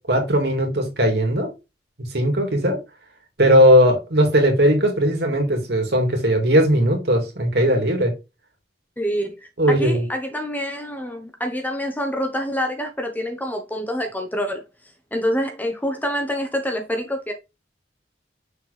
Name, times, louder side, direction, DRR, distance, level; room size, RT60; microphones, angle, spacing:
voice 1, 0.1-1.5 2.1-2.8 3.4-8.1 9.6-10.0, equal, 65° right, 2.3 m, -18 dB
voice 2, 9.0-9.3 9.7-14.6 15.1-17.3, equal, 10° left, 1.0 m, -26 dB
6.5 x 4.4 x 3.4 m
head